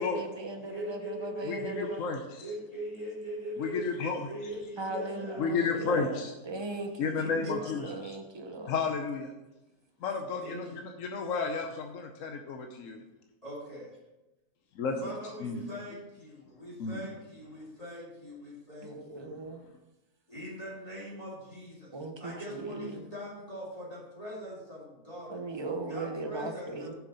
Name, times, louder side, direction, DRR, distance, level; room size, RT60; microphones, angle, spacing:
voice 1, 0.0-2.0 4.8-6.2 6.5-8.8 18.8-19.6 21.9-23.1 25.3-26.9, right 2 dB, 30° right, 5 dB, 0.5 m, -38 dB
voice 2, 0.6-2.0 2.4-3.9 4.2-5.5 7.0-8.1 10.4-10.8 13.4-13.9 15.0-19.2 20.3-21.9 22.2-25.4 25.9-26.9, equal, 25° left, -7 dB, 2.4 m, -41 dB
voice 3, 1.4-2.5 3.6-4.5 5.4-6.3 7.0-8.2 8.6-9.3 10.0-13.0 14.7-15.1 15.4-15.6 16.8-17.0 17.6-17.7, left 4 dB, 65° left, 4 dB, 1.0 m, -32 dB
7.4 x 5.8 x 5.4 m, 1.0 s
omnidirectional pair, 1.6 m